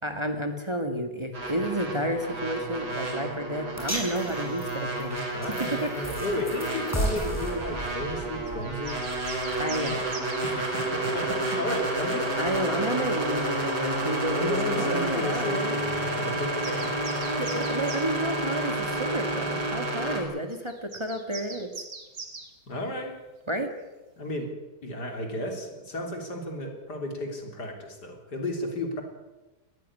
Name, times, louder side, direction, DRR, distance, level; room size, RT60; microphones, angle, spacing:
voice 1, 0.0-5.3 5.8-5.9 9.6-10.1 10.4-10.8 12.4-15.8 17.4-21.7 23.5-23.7, right 1 dB, 15° right, 6 dB, 1.9 m, -31 dB
sound 1, 1.3-20.2, right 1 dB, 75° right, 4.8 m, -30 dB
sound 2, 3.8-10.1, right 1 dB, 10° left, 6.3 m, -36 dB
voice 2, 5.3-9.0 10.5-12.3 14.0-16.9 22.7-23.2 24.2-24.5 24.8-29.0, left 1 dB, 75° left, 4 dB, 4.2 m, -33 dB
sound 3, 8.5-10.5 13.2-13.3 14.0-14.2 14.6-14.8 15.7-15.9 16.2-18.1 19.2-19.3 20.5-22.5, right 4 dB, 90° right, 3.4 m, -43 dB
20.0 x 15.0 x 9.8 m, 1.1 s
omnidirectional pair, 1.8 m